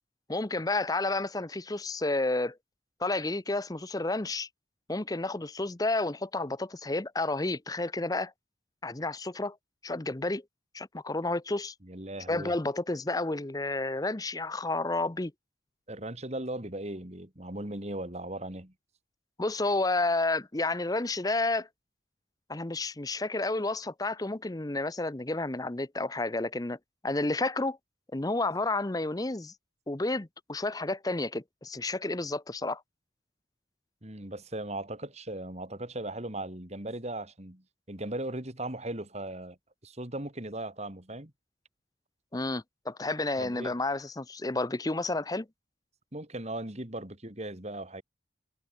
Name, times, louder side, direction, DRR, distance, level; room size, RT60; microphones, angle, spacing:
voice 1, 0.3-2.6 3.0-4.5 4.9-8.3 8.8-9.6 9.8-10.4 10.7-11.7 12.3-15.3 19.4-21.7 22.5-26.8 27.0-27.8 28.1-29.5 29.9-32.8 42.3-45.5, left 2 dB, 20° left, 0.7 m, -31 dB
voice 2, 11.8-12.5 15.9-18.7 34.0-39.6 39.8-41.3 43.4-43.7 46.1-48.0, right 1 dB, 35° right, 2.9 m, -38 dB
head